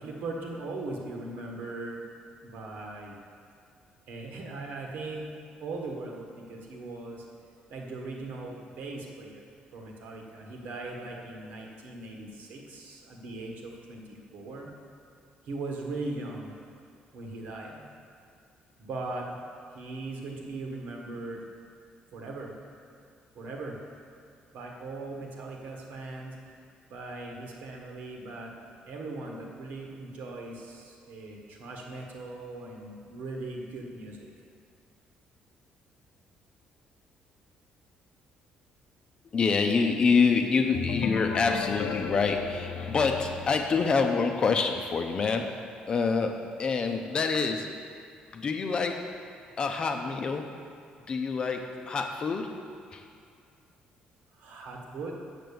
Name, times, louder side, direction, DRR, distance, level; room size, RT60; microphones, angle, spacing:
voice 1, 0.0-2.0 2.4-3.1 4.1-5.3 5.6-7.2 7.7-9.4 9.7-14.7 15.5-16.5 17.1-17.8 18.8-19.3 19.7-21.4 22.1-22.5 23.3-23.8 24.5-26.3 26.9-28.5 28.9-34.3 54.4-55.2, right 2 dB, 75° right, 0 dB, 1.7 m, -39 dB
voice 2, 39.3-45.6 45.9-47.7 48.3-49.1 49.6-50.5 51.1-52.5 52.9-53.1, left 5 dB, 30° left, 4 dB, 0.7 m, -26 dB
sound 1, 40.7-44.4, left 7 dB, 80° left, 0.6 m, -35 dB
7.8 x 6.7 x 6.9 m, 2.3 s
cardioid pair, 160°, 3 cm